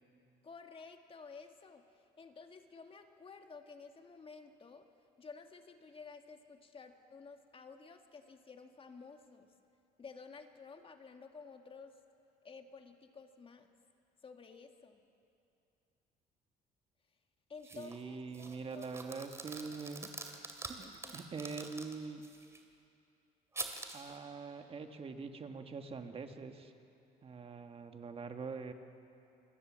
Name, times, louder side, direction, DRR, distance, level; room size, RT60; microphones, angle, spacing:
voice 1, 0.4-1.8 2.2-4.9 5.2-9.5 10.0-12.0 12.4-13.7 14.2-15.0 17.5-19.1 20.8-21.2, left 4 dB, 30° left, 5 dB, 1.8 m, -53 dB
sound 1, 17.6-18.0 18.3-22.6 23.5-24.2, right 2 dB, 15° right, 2.6 m, -46 dB
voice 2, 17.7-20.1 20.7-22.2 23.9-26.7 27.2-28.7, right 4 dB, 35° right, 6 dB, 1.6 m, -44 dB
28.0 x 20.5 x 7.5 m, 2.6 s
cardioid pair, 110°, 17 cm